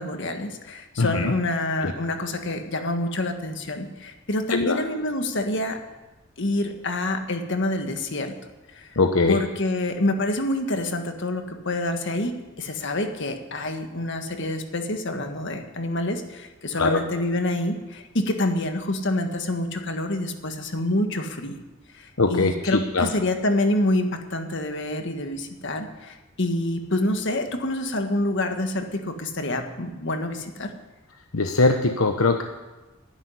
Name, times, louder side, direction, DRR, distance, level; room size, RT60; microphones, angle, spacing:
voice 1, 0.0-5.8 6.4-8.4 8.7-8.9 9.3-21.5 21.9-30.7, left 1 dB, 60° left, 6 dB, 1.6 m, -27 dB
voice 2, 1.0-1.3 1.8-1.9 4.5-4.8 9.0-9.4 16.8-17.0 22.2-23.1 31.3-32.4, left 3 dB, 80° left, 6 dB, 1.0 m, -21 dB
12.0 x 11.0 x 9.9 m, 1.2 s
head